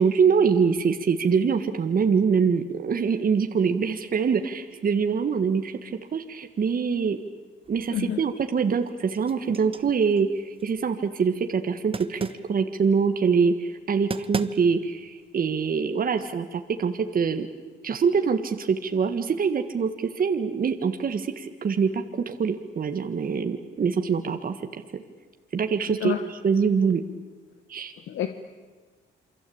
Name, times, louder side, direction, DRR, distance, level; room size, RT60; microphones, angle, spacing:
voice 1, 0.0-7.2 7.7-17.5 17.8-25.0 25.5-27.0 27.7-27.9, right 6 dB, 45° right, 6 dB, 1.7 m, -24 dB
sound 1, 7.6-8.3 8.7-10.9 11.9-12.5 13.8-13.9 14.1-14.9, right 4 dB, 30° right, 1.3 m, -36 dB
voice 2, 7.9-8.2 26.0-26.2 28.1-28.3, left 11 dB, 80° left, 8 dB, 1.5 m, -27 dB
28.5 x 23.5 x 8.7 m, 1.4 s
cardioid pair, 90°, 20 cm